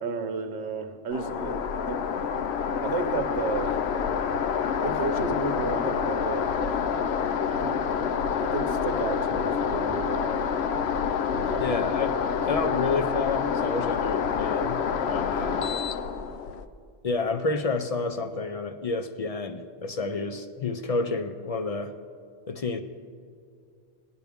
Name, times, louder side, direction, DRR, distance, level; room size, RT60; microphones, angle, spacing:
voice 1, 0.0-2.1 2.8-3.8 4.8-6.8 7.5-8.0 8.4-10.7 11.4-11.8 12.5-12.6, right 3 dB, 75° right, 7 dB, 1.1 m, -33 dB
sound 1, 1.1-16.6, left 7 dB, 70° left, 0.8 m, -27 dB
voice 2, 11.6-15.7 17.0-21.9 22.5-22.8, left 3 dB, 55° left, 7 dB, 0.4 m, -30 dB
17.0 x 10.5 x 3.5 m, 2.3 s
omnidirectional pair, 1.1 m